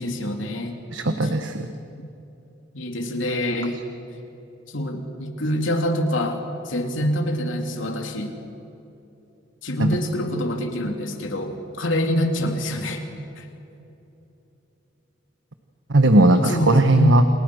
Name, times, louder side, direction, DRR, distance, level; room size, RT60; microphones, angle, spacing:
voice 1, 0.0-0.8 1.2-1.3 2.0-2.1 2.7-3.7 4.7-6.4 6.6-8.3 9.6-13.0 13.4-13.5 16.3-17.2, equal, 90° left, 3 dB, 3.4 m, -25 dB
voice 2, 0.9-1.7 9.8-9.9 15.9-17.2, right 1 dB, 80° right, 8 dB, 1.3 m, -17 dB
30.0 x 28.5 x 6.5 m, 2.9 s
head